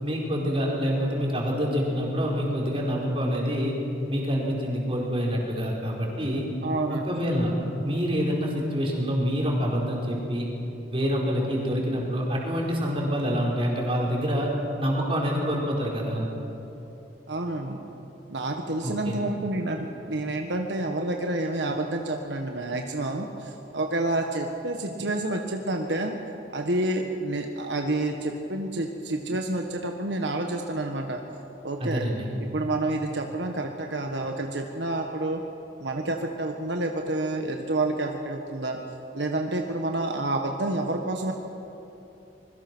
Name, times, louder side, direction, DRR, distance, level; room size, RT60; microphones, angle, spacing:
voice 1, 0.0-3.8 4.1-6.5 6.9-7.5 7.8-10.5 10.9-14.5 14.8-16.3 18.8-19.2 31.8-32.3, equal, 30° right, -2 dB, 4.7 m, -26 dB
voice 2, 6.6-7.0 17.3-17.8 18.3-26.2 26.5-31.2 31.6-32.1 32.5-35.4 35.8-38.8 39.1-41.3, right 2 dB, 75° right, 3 dB, 1.4 m, -29 dB
25.0 x 22.0 x 6.2 m, 3.0 s
head